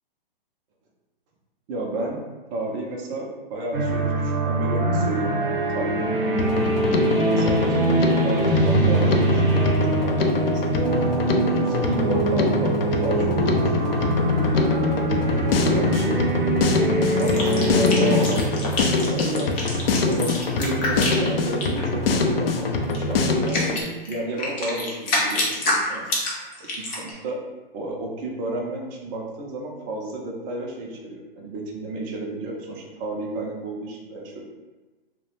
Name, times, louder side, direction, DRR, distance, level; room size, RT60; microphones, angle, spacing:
voice 1, 1.7-2.2 2.5-6.7 7.3-7.8 8.2-9.8 10.0-10.8 11.2-13.3 13.6-14.1 14.8-16.2 17.2-19.6 20.1-26.1 26.6-27.4 27.7-34.4, right 2 dB, 20° right, -1 dB, 0.4 m, -32 dB
sound 1, 3.7-18.3, right 1 dB, 60° right, 0.7 m, -23 dB
Drum kit, 6.4-23.8, left 3 dB, 70° left, 0.5 m, -24 dB
sound 2, 17.2-21.8 22.9-23.0 23.5-27.1, left 2 dB, 25° left, 0.6 m, -27 dB
2.3 x 2.1 x 2.9 m, 1.2 s
figure-of-eight pair, 120°, 29 cm